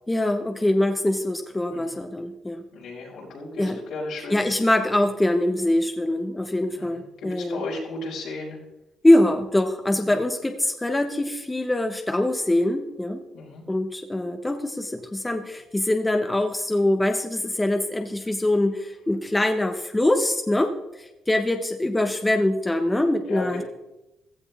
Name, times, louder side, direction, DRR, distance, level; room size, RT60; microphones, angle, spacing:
voice 1, 0.1-2.6 3.6-3.8 4.3-7.6 9.0-13.2 13.7-23.6, left 1 dB, 15° left, 5 dB, 1.1 m, -23 dB
voice 2, 2.7-4.5 6.7-8.6 13.3-13.7 23.1-23.6, left 3 dB, 80° left, -4 dB, 5.4 m, -35 dB
15.5 x 14.0 x 3.6 m, 0.95 s
cardioid pair, 90°, 0 cm